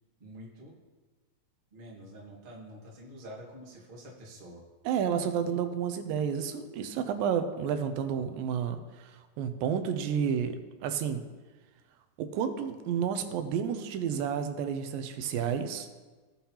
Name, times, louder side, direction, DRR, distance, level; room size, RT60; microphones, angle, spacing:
voice 1, 0.2-0.7 1.7-4.6, equal, 65° right, -4 dB, 0.5 m, -47 dB
voice 2, 4.9-11.2 12.2-15.9, right 7 dB, 85° right, 7 dB, 2.4 m, -31 dB
16.5 x 5.5 x 2.9 m, 1.3 s
omnidirectional pair, 4.1 m